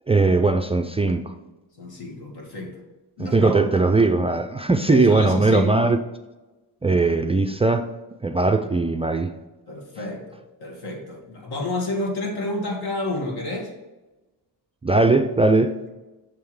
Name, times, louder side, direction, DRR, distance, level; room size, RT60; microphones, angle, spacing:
voice 1, 0.1-1.3 3.2-6.0 6.8-7.9 8.2-9.3 14.8-15.7, right 3 dB, 15° right, 0.3 m, -19 dB
voice 2, 1.8-2.7 3.2-3.9 4.9-5.7 9.7-13.7, left 2 dB, 65° left, 2.0 m, -30 dB
7.0 x 3.6 x 4.7 m
cardioid pair, 90°, 41 cm